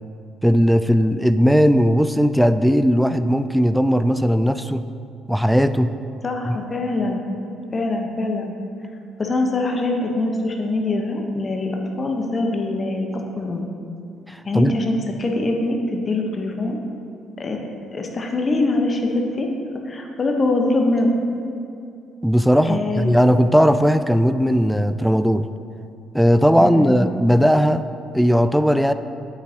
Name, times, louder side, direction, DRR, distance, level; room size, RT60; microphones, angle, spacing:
voice 1, 0.4-4.8 5.3-5.9 6.5-6.6 14.3-14.7 22.2-25.5 26.1-27.8 28.1-28.9, equal, ahead, 11 dB, 0.3 m, -17 dB
voice 2, 6.2-7.2 7.7-8.5 9.2-13.6 14.5-16.8 17.4-19.5 19.7-21.1 22.6-23.1 26.6-27.1, left 2 dB, 35° left, 2 dB, 1.1 m, -23 dB
9.5 x 8.3 x 3.0 m, 2.6 s
figure-of-eight pair, 45°, 0 cm